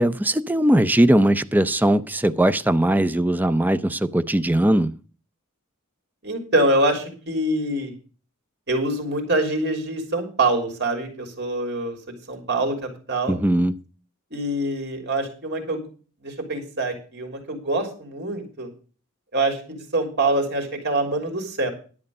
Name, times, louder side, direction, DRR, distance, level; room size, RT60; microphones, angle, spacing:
voice 1, 0.0-4.9 13.3-13.7, right 1 dB, 10° right, 12 dB, 0.5 m, -19 dB
voice 2, 6.2-7.9 8.7-12.0 12.3-13.4 14.3-15.8 16.2-18.7 19.3-21.7, right 2 dB, 55° right, 4 dB, 3.4 m, -25 dB
11.0 x 8.7 x 5.3 m, 0.37 s
head